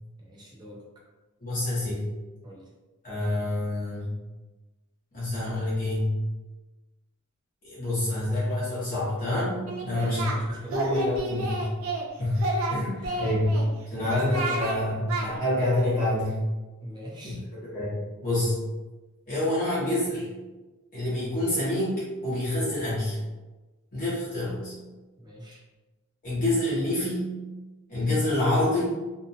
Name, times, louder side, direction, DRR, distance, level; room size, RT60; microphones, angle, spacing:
voice 1, 0.2-0.8 2.4-2.7 9.9-11.0 12.9-13.4 14.0-14.2 16.8-17.4 25.2-25.6, right 1 dB, 20° right, -3 dB, 0.6 m, -41 dB
voice 2, 1.4-2.0 3.0-4.1 5.1-6.1 7.6-10.3 10.7-11.7 12.2-12.4 12.7-13.5 13.9-16.4 17.2-17.3 17.7-18.6 19.3-20.3 20.9-23.2 23.9-24.7 26.2-27.3 27.9-29.0, left 1 dB, 40° left, -9 dB, 0.9 m, -27 dB
Singing, 9.7-10.4 10.7-12.1 12.4-13.6 14.1-14.8 15.1-15.3, right 2 dB, 75° right, 0.5 m, -30 dB
2.7 x 2.1 x 2.6 m, 1.2 s
head